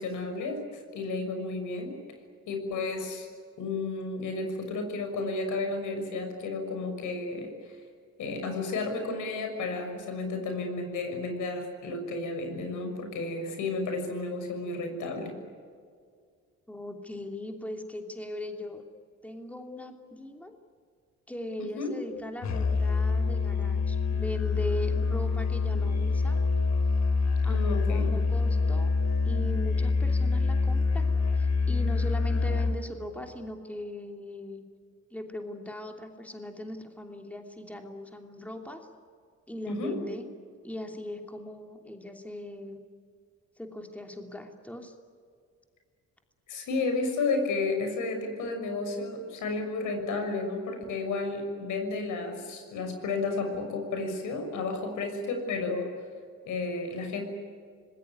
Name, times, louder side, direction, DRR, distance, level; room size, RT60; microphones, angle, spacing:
voice 1, 0.0-2.0 2.5-3.3 3.6-7.8 8.2-15.4 21.8-21.9 27.4-28.1 39.7-40.0 46.5-55.9 56.5-57.2, left 3 dB, 80° left, 5 dB, 6.4 m, -32 dB
voice 2, 16.7-18.8 19.2-20.5 21.3-26.4 27.4-28.9 29.2-34.6 35.1-38.8 39.5-40.3 40.6-42.8 43.6-44.9, left 1 dB, 5° left, 3 dB, 3.0 m, -39 dB
Musical instrument, 22.4-32.8, left 4 dB, 65° left, 3.6 m, -26 dB
26.5 x 20.5 x 9.6 m, 2.1 s
cardioid pair, 90°, 30 cm